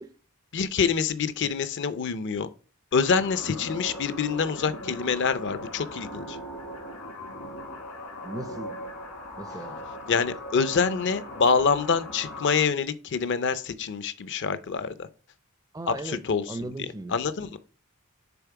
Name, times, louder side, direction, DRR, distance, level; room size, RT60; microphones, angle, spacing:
voice 1, 0.5-2.5 2.9-6.4 10.1-15.1 15.9-16.7 17.1-17.6, left 5 dB, 50° left, 0.5 m, -26 dB
sound 1, 2.9-12.7, left 1 dB, 70° left, 1.7 m, -39 dB
voice 2, 8.2-8.8 9.4-9.8 10.7-11.0 15.7-16.2 16.5-17.2, right 2 dB, 15° right, 0.4 m, -37 dB
7.0 x 3.7 x 4.6 m
head